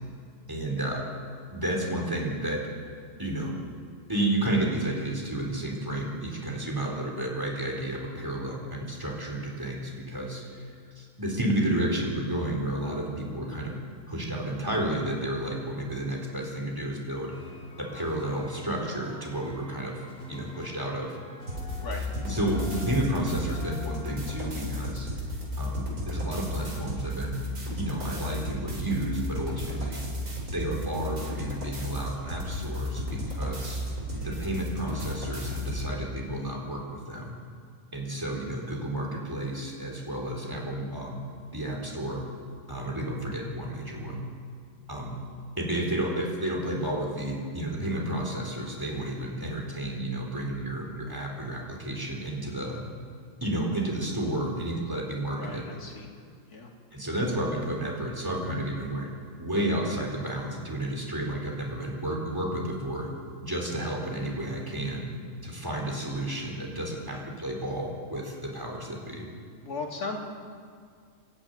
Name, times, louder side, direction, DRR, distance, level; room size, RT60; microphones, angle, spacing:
voice 1, 0.5-1.1 1.5-2.7 3.2-3.6 4.1-10.4 11.0-13.8 14.1-17.3 17.8-21.2 22.2-25.1 25.6-27.4 27.8-30.0 30.5-33.8 34.2-37.3 37.9-41.2 41.5-42.3 42.7-44.2 44.9-45.2 45.6-52.8 53.4-55.7 56.9-59.1 59.4-63.1 63.4-65.1 65.4-69.3, right 1 dB, 15° right, -1 dB, 4.0 m, -31 dB
sound 1, 17.3-24.5, left 4 dB, 40° left, 2.7 m, -46 dB
sound 2, 21.5-35.9, left 1 dB, 75° right, 4.8 m, -34 dB
voice 2, 34.1-34.5 55.3-56.1 56.5-56.7 67.1-67.3 69.6-70.2, left 4 dB, 85° left, 0 dB, 3.2 m, -38 dB
24.5 x 12.5 x 9.4 m, 2.2 s
omnidirectional pair, 1.6 m